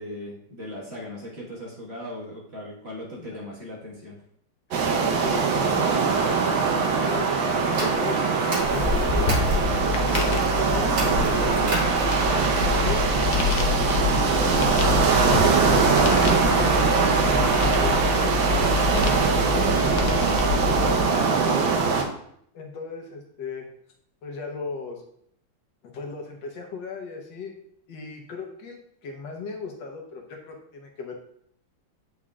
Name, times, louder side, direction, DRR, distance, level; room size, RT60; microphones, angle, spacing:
voice 1, 0.0-4.2, left 1 dB, 35° right, -5 dB, 1.6 m, -38 dB
voice 2, 4.7-6.0 7.1-9.3 10.0-11.9 12.5-13.2 13.9-16.8 17.6-18.3 18.7-21.8 22.5-23.7 24.2-25.0 25.8-27.5 27.9-31.2, left 4 dB, 75° left, 2 dB, 1.6 m, -37 dB
sound 1, 4.7-22.0, right 5 dB, 85° right, 1.5 m, -22 dB
sound 2, 7.8-9.6 10.0-10.5 10.9-12.3, right 1 dB, 60° right, 2.2 m, -33 dB
sound 3, 8.6-21.0, left 4 dB, 60° left, 0.9 m, -27 dB
8.4 x 4.8 x 2.4 m, 0.69 s
omnidirectional pair, 2.1 m